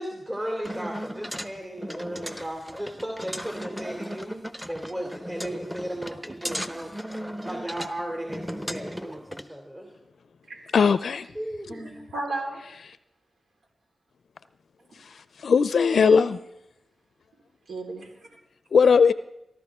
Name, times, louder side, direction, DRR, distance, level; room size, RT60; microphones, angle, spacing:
voice 1, 0.0-6.9 7.4-10.0 11.1-12.0, right 1 dB, 25° right, 1 dB, 2.8 m, -35 dB
sound 1, 0.6-9.4, equal, ahead, 1.0 m, -36 dB
voice 2, 10.7-11.3 15.4-16.4 18.7-19.1, left 6 dB, 75° left, 14 dB, 0.5 m, -18 dB
voice 3, 11.7-12.6 15.9-16.3 17.7-18.1, right 1 dB, 80° right, 0 dB, 4.2 m, -33 dB
23.0 x 12.5 x 3.6 m, 0.82 s
cardioid pair, 50°, 0 cm